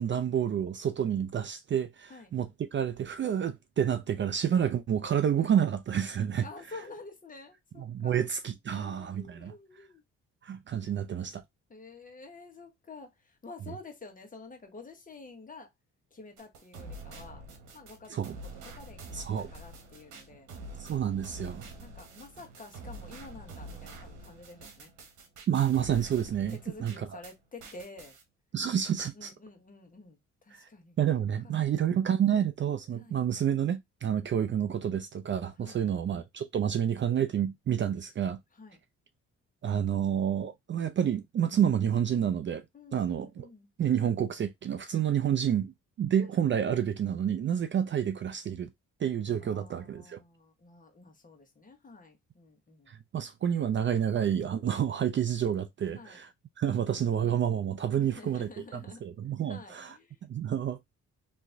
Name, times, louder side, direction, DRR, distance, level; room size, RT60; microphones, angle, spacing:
voice 1, 0.0-6.4 7.8-9.5 10.4-11.4 18.1-18.4 19.1-19.5 20.8-21.6 25.5-27.1 28.5-29.3 30.5-30.7 31.0-38.4 39.6-42.6 42.9-43.5 43.8-45.7 46.0-48.7 49.0-50.2 52.9-56.3 56.6-59.9 60.2-60.8, right 9 dB, 40° right, 0.4 m, -29 dB
voice 2, 6.4-8.3 8.7-10.0 11.7-15.7 16.1-17.4 17.7-20.5 21.8-24.9 26.5-28.2 29.1-31.0 31.4-31.7 32.9-33.2 34.1-34.5 35.6-35.8 38.5-38.8 42.7-43.7 46.2-46.3 49.4-52.9 55.8-56.2 57.9-59.0 59.5-60.2, left 3 dB, 25° left, 1.3 m, -49 dB
sound 1, 16.4-27.3 27.6-28.2, right 2 dB, 75° right, 1.2 m, -46 dB
3.4 x 3.0 x 2.6 m
cardioid pair, 90°, 30 cm